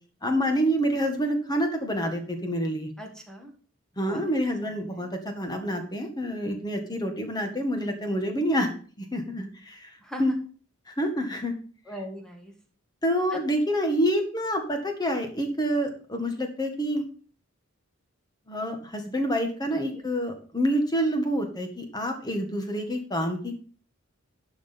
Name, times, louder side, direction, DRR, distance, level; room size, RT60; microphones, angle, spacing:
voice 1, 0.2-2.9 4.0-8.7 9.0-9.9 10.2-10.3 10.9-11.5 13.0-17.0 18.5-23.5, equal, 20° left, 5 dB, 1.8 m, -27 dB
voice 2, 3.0-3.5 4.0-4.2 4.6-5.1 10.0-10.2 11.9-12.5 13.3-13.4 19.9-20.0, equal, 5° left, 3 dB, 1.9 m, -40 dB
11.5 x 5.1 x 5.3 m, 0.42 s
head